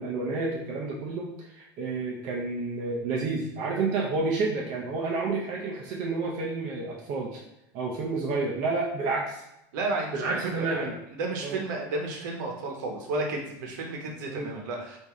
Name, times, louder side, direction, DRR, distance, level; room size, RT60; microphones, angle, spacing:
voice 1, 0.0-7.4 7.7-9.4 10.1-11.0 11.4-11.6 14.3-14.5, right 3 dB, 40° right, -2 dB, 0.5 m, -30 dB
voice 2, 9.7-10.9 11.1-15.0, right 2 dB, 75° right, 1 dB, 0.9 m, -32 dB
3.1 x 2.6 x 3.5 m, 0.84 s
cardioid pair, 180°, 10 cm